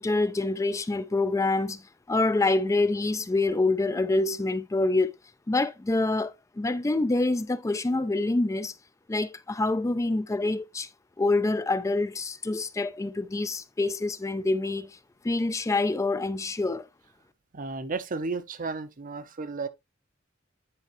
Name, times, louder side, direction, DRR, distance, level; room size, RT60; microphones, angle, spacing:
voice 1, 0.0-1.8 2.1-5.1 5.5-8.7 9.1-10.9 11.2-14.9 15.2-16.9, left 2 dB, 15° left, 0.4 m, -26 dB
voice 2, 17.5-19.7, right 4 dB, 40° right, 0.7 m, -33 dB
9.7 x 4.6 x 3.0 m
head